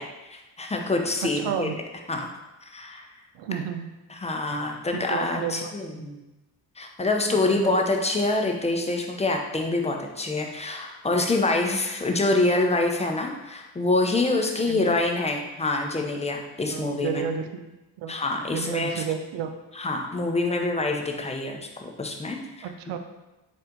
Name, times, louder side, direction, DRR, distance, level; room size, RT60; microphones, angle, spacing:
voice 1, 0.0-1.7 2.1-2.3 2.6-3.1 4.2-6.2 6.8-17.2 18.1-19.0 19.8-23.0, left 2 dB, 15° left, 2 dB, 0.6 m, -26 dB
voice 2, 1.2-1.8 3.3-3.9 4.9-5.7 7.4-7.8 14.6-15.0 16.7-18.2 18.5-19.5 22.6-23.0, right 7 dB, 70° right, 7 dB, 0.6 m, -32 dB
4.1 x 2.6 x 3.7 m, 1.0 s
supercardioid pair, 60°, 45 cm